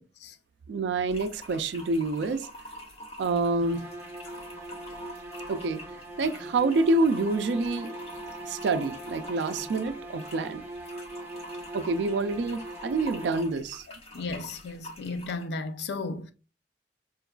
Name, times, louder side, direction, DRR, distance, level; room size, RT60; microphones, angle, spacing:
voice 1, 0.7-2.5 3.2-3.9 5.1-5.2 5.5-5.8 6.2-7.9 8.5-10.6 11.7-13.8, right 3 dB, 85° right, 0.3 m, -27 dB
sound 1, 1.1-15.5, equal, 35° left, 0.7 m, -46 dB
sound 2, 3.6-13.8, right 1 dB, 10° right, 0.5 m, -41 dB
voice 2, 14.1-16.3, left 3 dB, 75° left, 0.4 m, -34 dB
4.5 x 2.3 x 2.2 m
head